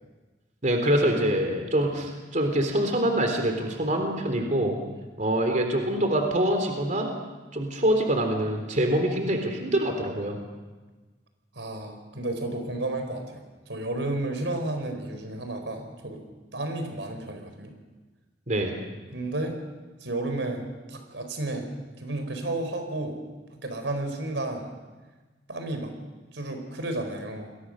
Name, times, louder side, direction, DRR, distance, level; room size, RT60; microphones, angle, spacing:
voice 1, 0.6-4.8 5.2-7.1 7.5-10.4 18.5-18.7, right 1 dB, 45° right, 4 dB, 3.7 m, -25 dB
voice 2, 11.5-16.2 16.5-17.7 19.1-19.6 20.0-21.7 22.0-23.2 23.5-24.7 25.5-25.9 26.3-27.5, right 2 dB, 85° right, 6 dB, 4.5 m, -32 dB
29.5 x 22.5 x 6.5 m, 1.3 s
head